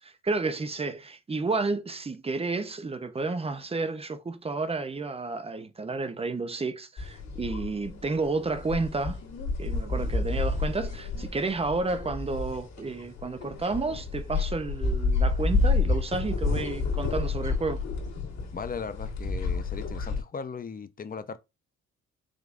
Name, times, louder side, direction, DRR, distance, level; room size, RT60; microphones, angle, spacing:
voice 1, 0.0-9.2 9.6-17.8, right 3 dB, 20° right, 0.6 m, -31 dB
sound 1, 7.0-20.2, left 3 dB, 60° left, 1.7 m, -30 dB
voice 2, 18.5-21.4, left 5 dB, 30° left, 0.6 m, -37 dB
5.0 x 3.3 x 2.5 m
cardioid pair, 90°, 30 cm